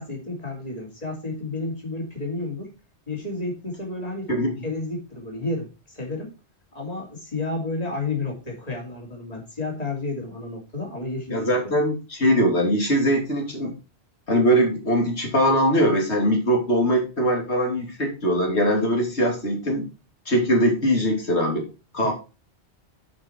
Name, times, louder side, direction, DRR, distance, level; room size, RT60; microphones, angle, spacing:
voice 1, 0.0-2.7 3.1-4.3 4.6-6.3 6.7-11.5 22.0-22.1, left 2 dB, 35° left, 0 dB, 3.1 m, -31 dB
voice 2, 11.3-13.7 14.3-19.8 20.3-21.7 21.9-22.1, equal, 75° left, 0 dB, 3.1 m, -21 dB
11.0 x 5.1 x 4.5 m, 0.31 s
omnidirectional pair, 1.2 m